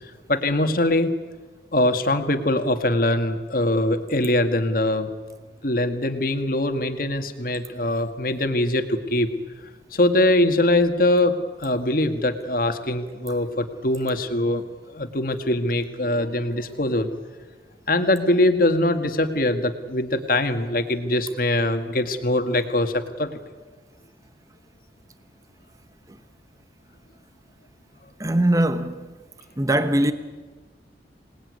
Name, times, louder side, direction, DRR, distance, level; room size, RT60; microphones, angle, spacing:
voice 1, 0.3-1.1 1.7-5.1 5.6-9.3 9.9-14.6 14.9-17.1 17.9-23.3, left 1 dB, 50° left, 2.0 m, -22 dB
voice 2, 28.2-29.0 29.6-30.1, right 1 dB, 20° right, 1.0 m, -20 dB
26.5 x 19.5 x 9.7 m
head